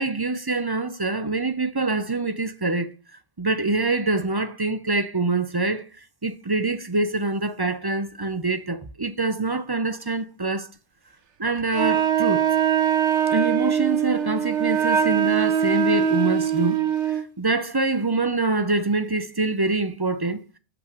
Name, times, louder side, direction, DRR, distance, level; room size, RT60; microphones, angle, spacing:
voice 1, 0.0-2.9 3.4-5.9 6.2-10.7 11.4-12.4 13.3-16.8 17.1-20.4, right 3 dB, 25° right, 0.6 m, -25 dB
Wind instrument woodwind instrument, 11.7-17.3, right 8 dB, 70° right, 1.2 m, -22 dB
6.2 x 5.8 x 6.4 m
omnidirectional pair, 1.3 m